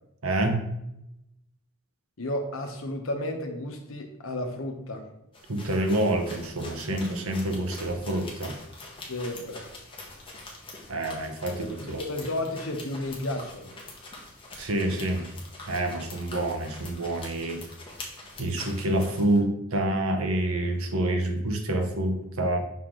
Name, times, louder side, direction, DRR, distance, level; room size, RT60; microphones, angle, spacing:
voice 1, 0.2-0.6 5.5-8.5 10.9-12.0 14.6-15.3 15.7-17.6 18.4-22.6, right 1 dB, 75° right, 5 dB, 0.9 m, -27 dB
voice 2, 2.2-5.1 9.1-9.6 11.6-11.7 12.0-13.7, left 1 dB, 70° left, 4 dB, 0.9 m, -32 dB
sound 1, 5.3-19.4, left 2 dB, 25° left, 1.0 m, -44 dB
5.8 x 4.7 x 3.8 m, 0.85 s
head